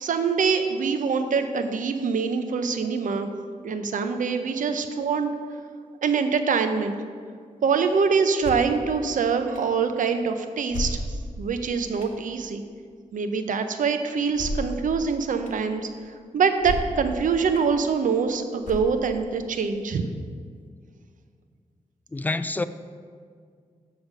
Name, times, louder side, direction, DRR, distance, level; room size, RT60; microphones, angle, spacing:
voice 1, 0.0-3.3 3.6-5.3 6.0-6.9 7.6-11.0 11.4-12.6 13.1-15.8 16.3-20.0, right 5 dB, 70° right, 0.6 m, -24 dB
sound 1, 8.4-8.8 9.5-9.6 10.7-11.4 12.0-12.2 14.3-14.8 15.5-15.6 16.6-17.1 17.5-17.6 18.6-19.2, left 1 dB, 70° left, 1.3 m, -31 dB
voice 2, 22.1-22.6, left 2 dB, 10° left, 0.3 m, -27 dB
6.5 x 5.0 x 6.1 m
cardioid pair, 65°, 14 cm